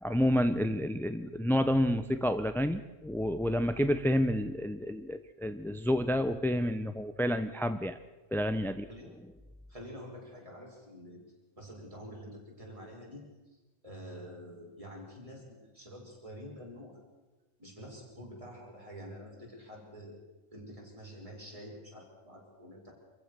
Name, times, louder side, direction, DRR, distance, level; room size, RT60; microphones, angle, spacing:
voice 1, 0.0-8.0 8.3-8.9, equal, 5° left, 10 dB, 0.4 m, -29 dB
voice 2, 9.7-11.2 11.6-13.2 13.5-17.0 17.6-20.2 20.5-22.9, equal, 25° right, -2 dB, 5.8 m, -47 dB
26.0 x 15.0 x 6.7 m, 1.2 s
omnidirectional pair, 1.3 m